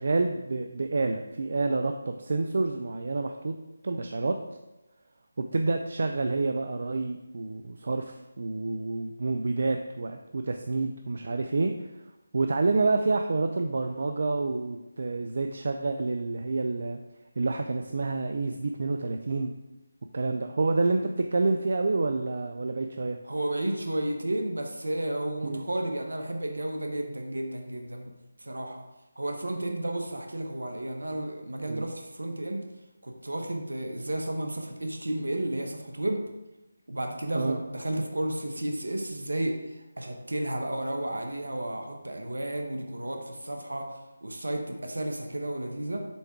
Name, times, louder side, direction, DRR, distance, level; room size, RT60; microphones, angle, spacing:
voice 1, 0.0-3.5 3.8-4.4 5.4-11.9 12.3-17.0 17.4-19.5 20.1-23.2 25.4-25.6 31.7-31.9 37.3-37.6, right 3 dB, 55° right, 6 dB, 0.4 m, -28 dB
voice 2, 23.2-28.1 28.4-28.8 29.2-32.6 33.0-36.2 36.9-46.1, right 1 dB, 80° right, 3 dB, 0.9 m, -32 dB
7.0 x 3.5 x 4.6 m, 1.0 s
figure-of-eight pair, 160°, 0 cm